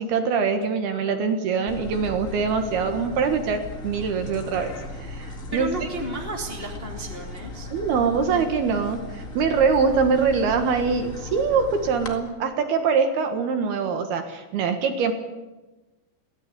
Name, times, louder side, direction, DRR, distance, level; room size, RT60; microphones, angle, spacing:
voice 1, 0.0-4.7 5.0-5.9 7.7-15.1, right 5 dB, 65° right, 6 dB, 3.3 m, -23 dB
sound 1, 1.7-12.1, left 2 dB, 40° left, 1.1 m, -37 dB
voice 2, 5.5-7.7, right 1 dB, 15° left, 1 dB, 2.1 m, -33 dB
23.0 x 17.5 x 9.8 m, 1.1 s
omnidirectional pair, 5.3 m